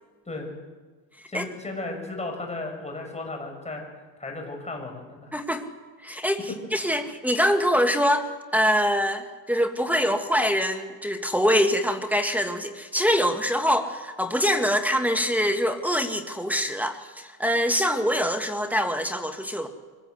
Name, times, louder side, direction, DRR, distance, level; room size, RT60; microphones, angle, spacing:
voice 1, 1.3-3.8 4.2-5.3, left 2 dB, 15° left, 3 dB, 6.2 m, -35 dB
voice 2, 5.3-5.6 6.0-19.7, equal, 5° right, 6 dB, 1.7 m, -24 dB
24.5 x 16.5 x 8.0 m, 1.3 s
cardioid pair, 115°, 47 cm